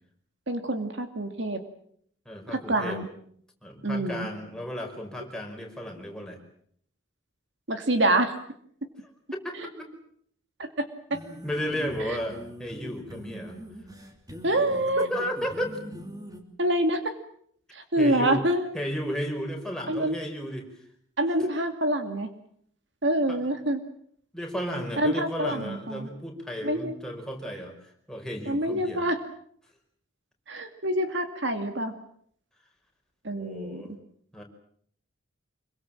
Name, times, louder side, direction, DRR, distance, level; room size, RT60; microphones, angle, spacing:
voice 1, 0.5-1.6 2.7-3.1 3.8-4.3 7.7-8.3 10.6-10.9 11.1-11.2 12.0-12.2 14.4-15.1 16.6-17.1 17.7-18.6 19.9-20.2 21.2-22.3 23.0-23.8 25.0-26.1 26.6-26.9 28.5-29.2 30.5-31.9 33.2-33.8, right 1 dB, 60° right, 7 dB, 2.4 m, -26 dB
voice 2, 2.2-3.0 3.6-6.4 9.3-9.9 11.4-13.6 15.1-15.8 18.0-18.5 18.7-20.7 23.3-23.4 24.3-29.0 33.3-33.9 34.3-34.4, equal, 5° left, 1 dB, 5.1 m, -34 dB
sound 1, 11.1-16.4, equal, 20° right, 3.0 m, -42 dB
26.0 x 23.5 x 7.6 m, 0.66 s
head